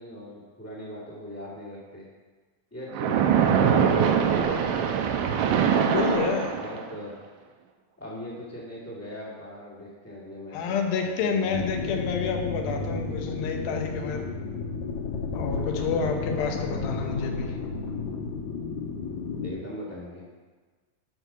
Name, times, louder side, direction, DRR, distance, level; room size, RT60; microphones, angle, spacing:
voice 1, 0.0-2.0 2.7-3.8 4.1-5.2 6.0-6.3 6.5-7.1 8.0-10.8 11.0-12.0 15.6-16.2 19.4-20.2, left 1 dB, 5° left, -6 dB, 1.2 m, -40 dB
Splash splatter, 2.9-7.0, right 7 dB, 80° right, 2.3 m, -23 dB
voice 2, 5.8-6.5 10.5-14.2 15.3-17.6, left 5 dB, 90° left, 3 dB, 2.8 m, -29 dB
sound 1, 11.5-19.5, left 4 dB, 70° left, 2.1 m, -32 dB
12.0 x 4.6 x 5.6 m, 1.4 s
omnidirectional pair, 4.1 m